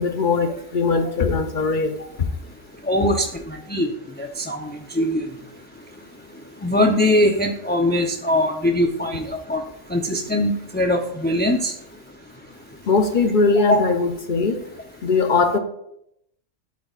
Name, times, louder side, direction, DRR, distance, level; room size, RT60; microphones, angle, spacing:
voice 1, 0.0-2.0 12.9-14.6 15.0-15.6, left 4 dB, 50° left, 7 dB, 0.7 m, -20 dB
voice 2, 2.9-3.9 4.2-4.7 4.9-5.2 6.6-9.2 9.5-9.6 9.9-11.7 13.7-13.8, left 1 dB, 15° left, 2 dB, 0.4 m, -21 dB
12.5 x 8.4 x 2.4 m, 0.77 s
omnidirectional pair, 1.3 m